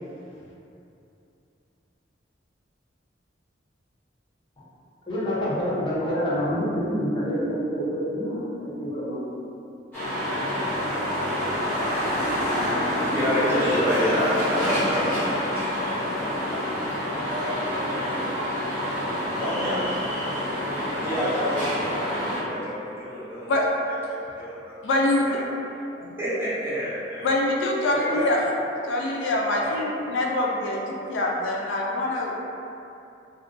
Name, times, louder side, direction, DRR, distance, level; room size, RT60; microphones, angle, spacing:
voice 1, 5.1-9.2, equal, 25° left, -10 dB, 0.6 m, -27 dB
sound 1, 9.9-22.4, equal, 10° left, 1.0 m, -27 dB
voice 2, 12.9-16.6 17.2-18.3 18.7-19.9 20.1-20.5 20.9-24.7 25.2-25.4 26.0-27.4 27.9-28.5 29.6-30.0, equal, 15° right, -10 dB, 0.6 m, -30 dB
voice 3, 24.8-25.3 27.2-28.4 28.8-32.4, left 2 dB, 80° left, -2 dB, 0.3 m, -24 dB
2.4 x 2.1 x 2.4 m, 2.7 s
head